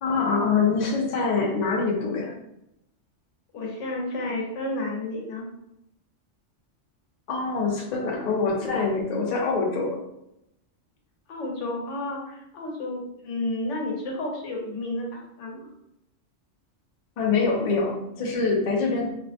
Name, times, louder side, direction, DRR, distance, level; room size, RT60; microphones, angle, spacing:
voice 1, 0.0-2.4 7.3-10.0 17.2-19.2, left 4 dB, 60° left, 0 dB, 0.4 m, -25 dB
voice 2, 3.5-5.5 11.3-15.7, left 2 dB, 75° left, 0 dB, 1.0 m, -31 dB
2.5 x 2.0 x 2.7 m, 0.82 s
omnidirectional pair, 1.3 m